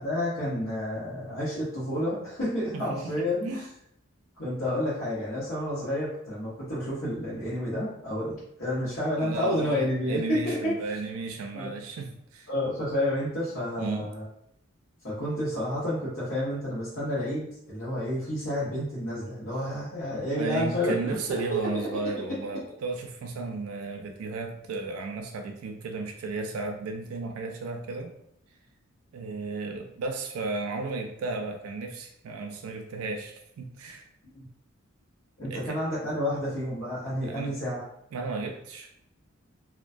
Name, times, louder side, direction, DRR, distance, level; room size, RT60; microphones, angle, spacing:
voice 1, 0.0-3.6 4.4-10.8 11.5-11.7 12.5-14.2 15.0-21.7 22.3-22.4 35.4-37.8, left 1 dB, 80° left, -11 dB, 1.0 m, -30 dB
voice 2, 9.2-12.5 13.8-14.1 20.4-28.1 29.1-34.0 35.5-35.8 37.2-37.5 38.1-38.9, right 3 dB, 90° right, 3 dB, 0.3 m, -34 dB
2.3 x 2.2 x 2.5 m, 0.75 s
head